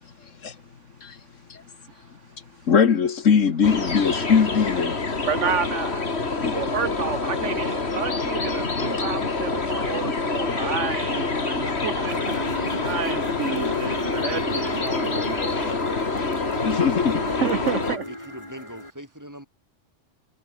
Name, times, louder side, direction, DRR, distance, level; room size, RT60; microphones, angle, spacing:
voice 1, 2.7-5.0 6.4-6.6 16.6-17.3, left 6 dB, 85° left, 1.8 m, -20 dB
sound 1, 3.6-18.0, left 3 dB, 55° left, 2.7 m, -27 dB
voice 2, 5.2-12.3 12.8-15.8 17.4-18.0, right 7 dB, 75° right, 1.5 m, -30 dB
sound 2, 12.1-18.9, left 1 dB, 20° left, 5.2 m, -34 dB
voice 3, 17.5-19.5, equal, 15° right, 6.8 m, -41 dB
omnidirectional pair, 1.3 m